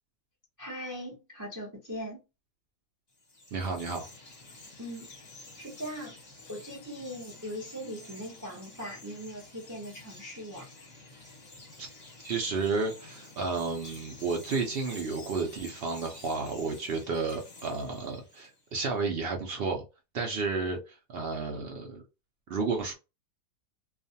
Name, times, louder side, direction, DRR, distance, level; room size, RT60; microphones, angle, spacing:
voice 1, 0.6-2.2 4.8-5.1 5.6-6.1 6.5-10.7, equal, 25° right, 0.4 m, -40 dB
Chirp tweet, 3.1-18.7, left 2 dB, 35° left, 0.8 m, -50 dB
voice 2, 3.5-4.1 11.8-11.9 12.2-19.8 20.1-22.0 22.5-22.9, right 4 dB, 85° right, 0.5 m, -32 dB
2.4 x 2.3 x 2.6 m
omnidirectional pair, 1.7 m